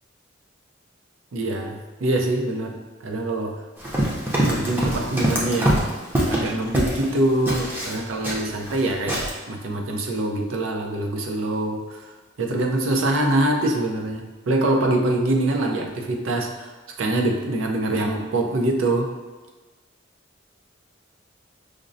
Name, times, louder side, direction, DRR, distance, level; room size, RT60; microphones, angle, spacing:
voice 1, 1.3-2.8 3.0-3.5 4.4-5.9 6.3-12.1 12.4-16.7 17.0-19.1, right 1 dB, 85° right, 2 dB, 0.5 m, -24 dB
Run, 3.8-7.1 7.5-8.8 9.1-9.3, right 1 dB, 10° right, 0.5 m, -24 dB
5.0 x 2.0 x 2.6 m, 1.2 s
head